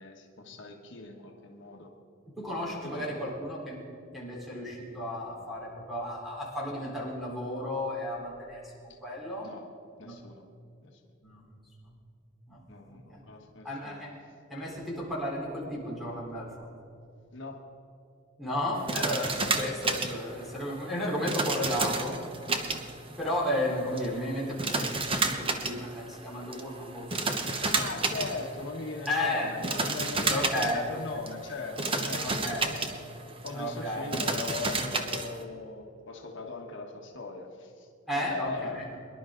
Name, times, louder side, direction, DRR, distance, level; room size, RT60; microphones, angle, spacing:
voice 1, 0.0-1.9 2.7-3.1 9.4-9.7 10.0-10.4 10.8-11.0 12.7-14.0 17.3-17.6 27.6-32.9 33.4-37.9 38.1-38.8, left 3 dB, 65° left, 1 dB, 1.4 m, -39 dB
voice 2, 2.4-3.8 4.1-9.5 10.0-10.2 11.2-11.6 11.8-12.0 12.5-12.6 12.9-13.2 13.6-14.1 14.5-16.7 18.4-22.2 23.2-27.4 29.1-29.6 30.3-31.0 32.2-32.7 33.5-34.2 38.1-38.8, left 1 dB, ahead, -5 dB, 4.0 m, -33 dB
sound 1, 18.7-35.4, right 3 dB, 25° right, 1.0 m, -32 dB
23.5 x 11.0 x 3.9 m, 2.6 s
head